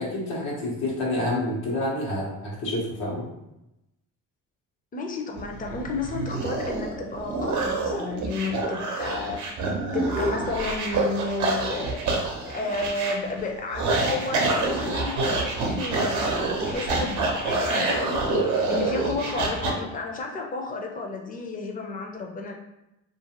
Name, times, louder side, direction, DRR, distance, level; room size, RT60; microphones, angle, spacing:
voice 1, 0.0-3.3, left 1 dB, 90° left, -4 dB, 1.0 m, -28 dB
voice 2, 4.9-12.0 12.4-18.2 18.7-22.5, left 3 dB, 30° left, 1 dB, 0.5 m, -32 dB
sound 1, 5.4-19.7, right 3 dB, 70° right, 0.7 m, -27 dB
2.5 x 2.4 x 2.9 m, 0.90 s
cardioid pair, 90°, 30 cm